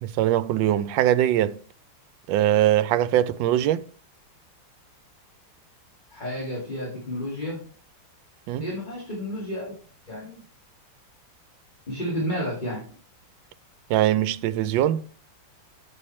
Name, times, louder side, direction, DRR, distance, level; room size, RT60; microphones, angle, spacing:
voice 1, 0.0-1.6 2.3-3.8 8.5-8.7 13.9-15.0, right 12 dB, 80° right, 1.3 m, -22 dB
voice 2, 6.1-7.6 8.6-9.7 10.1-10.4 11.9-12.9, equal, 25° left, 2.3 m, -31 dB
7.4 x 6.8 x 4.2 m
omnidirectional pair, 2.0 m